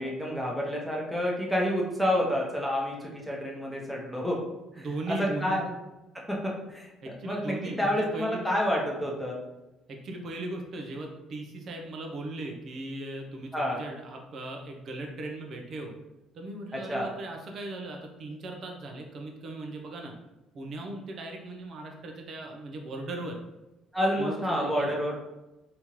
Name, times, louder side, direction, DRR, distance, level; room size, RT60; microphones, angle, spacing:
voice 1, 0.0-4.4 4.7-5.7 6.1-9.4 13.5-13.8 16.7-17.1 23.9-25.2, equal, ahead, -3 dB, 1.1 m, -29 dB
voice 2, 4.8-5.6 7.0-8.5 9.9-15.9 16.3-20.1 20.5-23.4 24.2-24.9, right 2 dB, 55° right, 2 dB, 0.8 m, -38 dB
3.5 x 2.9 x 3.0 m, 1.0 s
supercardioid pair, 65°, 0 cm